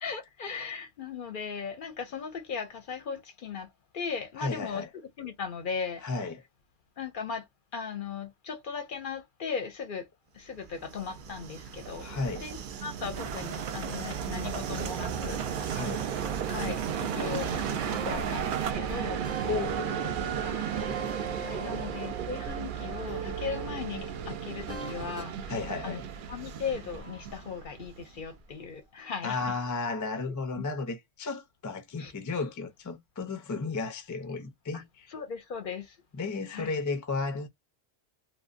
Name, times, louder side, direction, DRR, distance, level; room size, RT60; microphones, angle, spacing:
voice 1, 0.0-3.7 3.9-4.8 5.2-6.0 7.0-7.5 7.7-10.1 10.3-12.1 12.4-15.8 16.5-17.5 18.0-19.2 20.4-20.7 21.2-25.5 25.8-26.0 26.3-29.5 30.2-30.6 32.0-32.1 34.7-34.8 35.1-36.0 36.5-36.7, left 6 dB, 60° left, 0.7 m, -37 dB
voice 2, 4.4-4.9 6.0-6.4 12.0-12.5 14.4-14.5 15.7-16.1 19.0-19.2 19.4-22.1 25.5-26.0 29.2-35.1 36.2-37.5, left 4 dB, 30° left, 0.4 m, -34 dB
Train, 10.6-28.4, right 8 dB, 60° right, 0.6 m, -35 dB
sound 1, 13.1-18.7, right 7 dB, 90° right, 0.9 m, -39 dB
sound 2, 17.2-22.7 23.1-25.4, right 3 dB, 15° right, 0.7 m, -42 dB
2.8 x 2.2 x 2.4 m
omnidirectional pair, 1.1 m